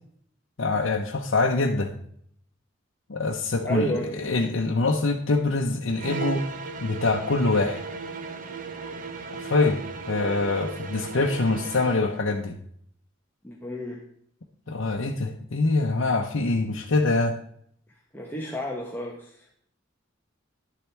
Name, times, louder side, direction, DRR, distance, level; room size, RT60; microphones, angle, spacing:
voice 1, 0.6-1.9 3.1-6.5 6.8-7.8 9.4-9.8 10.1-12.6 14.7-17.4, left 3 dB, 75° left, 0 dB, 0.8 m, -24 dB
voice 2, 3.7-4.1 13.4-14.0 18.1-19.3, equal, 10° left, -2 dB, 1.0 m, -31 dB
sound 1, 5.9-12.1, right 4 dB, 45° right, 0.7 m, -36 dB
11.0 x 7.4 x 3.4 m, 0.64 s
head